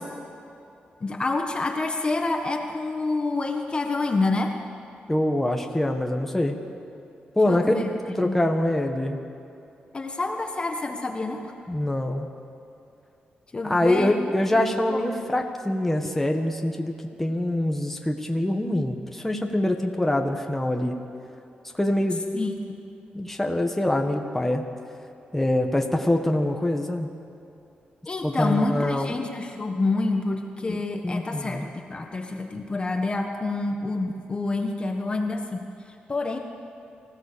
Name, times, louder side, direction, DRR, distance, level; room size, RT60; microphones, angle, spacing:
voice 1, 1.0-4.6 7.4-7.9 8.2-8.4 9.9-11.5 13.5-14.2 14.5-14.6 14.9-15.3 22.3-22.8 28.0-36.4, left 3 dB, 30° left, 3 dB, 1.5 m, -28 dB
voice 2, 5.1-6.6 7.3-7.7 8.1-9.2 11.7-12.3 13.6-20.9 21.7-22.2 23.1-24.6 25.3-27.1 28.2-29.2 30.7-31.7, left 1 dB, 10° left, 3 dB, 1.7 m, -24 dB
25.0 x 16.0 x 7.0 m, 2.7 s
cardioid pair, 100°, 3 cm